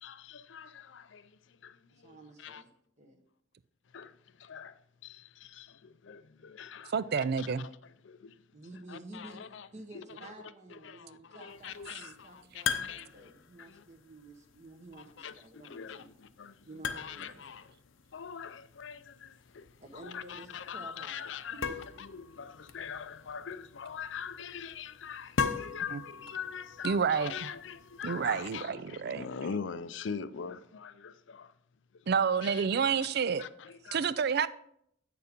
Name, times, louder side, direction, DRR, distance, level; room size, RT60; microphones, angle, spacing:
voice 1, 0.0-2.6 3.9-8.4 8.9-9.7 9.9-10.0 10.7-13.3 13.6-13.8 15.2-17.7 18.1-19.7 19.9-21.7 22.0-31.5 31.9-32.0 32.4-33.0 33.4-34.1, left 6 dB, 65° left, 0.5 m, -43 dB
voice 2, 1.9-2.7 3.0-3.2 8.5-16.1 16.6-17.5 19.8-21.2 21.5-21.8 29.5-29.6, right 2 dB, 35° right, 1.3 m, -51 dB
voice 3, 6.9-7.7 25.9-26.0 26.8-27.5 28.0-29.3 32.1-33.5 33.9-34.5, right 6 dB, 55° right, 0.4 m, -29 dB
sound 1, 11.5-28.6, left 6 dB, 90° left, 0.8 m, -41 dB
8.4 x 6.7 x 5.2 m
head